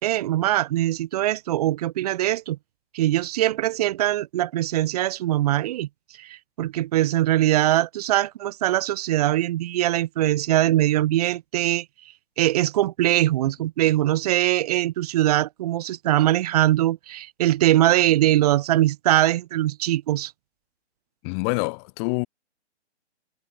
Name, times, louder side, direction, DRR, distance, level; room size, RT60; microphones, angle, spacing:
voice 1, 0.0-2.6 2.9-5.9 6.2-11.9 12.4-20.3, right 14 dB, 35° right, 4.0 m, -22 dB
voice 2, 21.2-22.3, left 35 dB, 25° left, 4.2 m, -26 dB
figure-of-eight pair, 130°, 34 cm